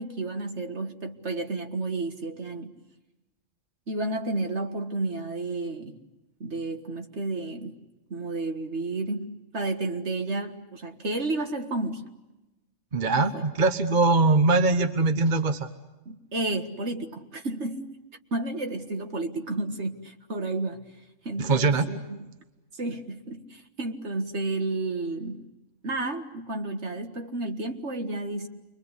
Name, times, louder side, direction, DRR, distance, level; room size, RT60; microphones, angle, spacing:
voice 1, 0.0-2.7 3.9-6.0 6.4-7.8 8.1-9.3 9.5-12.0 13.1-13.4 16.1-17.9 18.3-20.9 21.2-22.3 22.8-25.4 25.8-28.5, right 2 dB, 55° right, 5 dB, 2.1 m, -31 dB
voice 2, 12.9-15.7 21.4-21.9, right 3 dB, 40° right, 7 dB, 1.2 m, -22 dB
29.0 x 23.5 x 8.2 m, 1.1 s
omnidirectional pair, 1.4 m